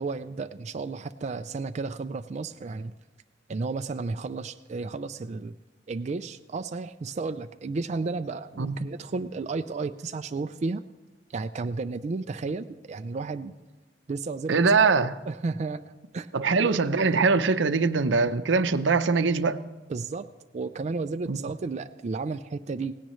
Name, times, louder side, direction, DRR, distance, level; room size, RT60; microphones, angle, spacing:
voice 1, 0.0-2.9 3.5-5.5 5.9-10.8 11.3-13.5 14.1-14.9 15.3-16.3 16.6-16.7 19.9-20.3 20.5-23.0, right 3 dB, 40° right, 8 dB, 0.4 m, -33 dB
voice 2, 14.5-15.2 16.3-19.6 21.3-21.4, right 4 dB, 80° right, 12 dB, 0.6 m, -22 dB
17.5 x 16.5 x 3.1 m, 1.3 s
head